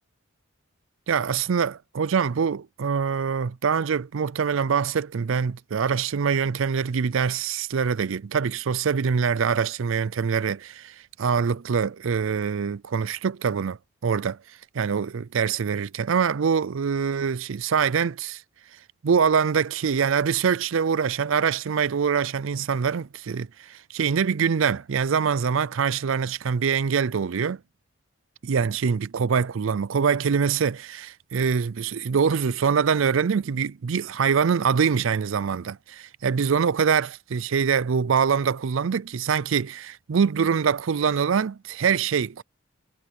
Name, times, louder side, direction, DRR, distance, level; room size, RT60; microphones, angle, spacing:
voice 1, 1.1-14.4 14.7-18.4 19.0-27.6 28.4-42.4, right 6 dB, 70° right, 0.5 m, -24 dB
head